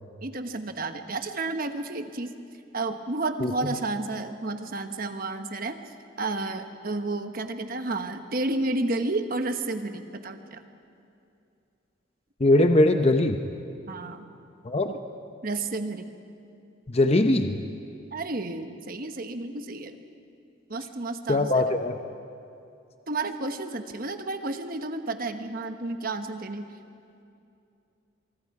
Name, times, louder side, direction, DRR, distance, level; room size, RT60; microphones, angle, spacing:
voice 1, 0.2-2.3 2.7-5.8 6.2-10.6 13.9-14.2 14.9-15.0 15.4-16.1 18.1-20.0 20.7-21.6 23.1-26.7, right 2 dB, 45° right, 7 dB, 1.1 m, -31 dB
voice 2, 12.4-13.4 14.6-14.9 16.9-17.6 21.3-22.0, left 2 dB, 30° left, 6 dB, 0.7 m, -21 dB
24.0 x 23.5 x 4.8 m, 2.6 s
head